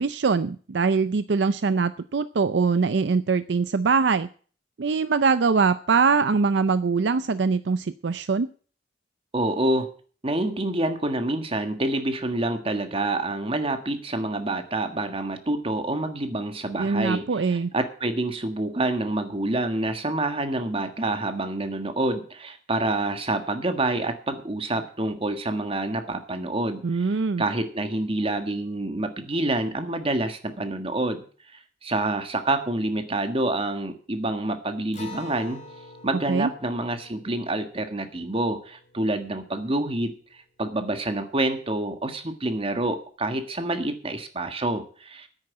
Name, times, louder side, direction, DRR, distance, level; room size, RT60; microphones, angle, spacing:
voice 1, 0.0-4.3 4.8-8.5 16.8-17.7 26.8-27.4 36.3-36.5, right 4 dB, 70° right, 13 dB, 0.5 m, -23 dB
voice 2, 9.3-9.9 10.2-31.2 31.8-35.6 36.0-40.1 40.6-45.3, right 2 dB, 30° right, 8 dB, 1.6 m, -27 dB
Acoustic guitar, 34.9-39.8, left 2 dB, 40° left, 2.4 m, -46 dB
9.9 x 8.9 x 8.4 m, 0.44 s
head